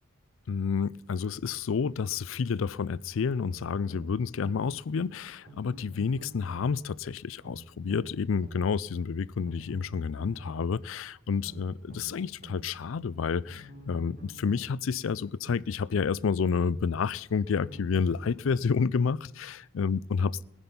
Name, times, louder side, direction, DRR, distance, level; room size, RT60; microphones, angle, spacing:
voice 1, 0.5-20.4, left 5 dB, 70° left, 0.4 m, -29 dB
sound 1, 3.4-4.7 5.4-6.7 7.4-8.7 9.4-10.7 11.4-12.7 13.4-14.7 15.4-16.7 17.4-18.7 19.4-19.5, right 2 dB, 45° right, 4.3 m, -48 dB
19.5 x 10.0 x 5.3 m
head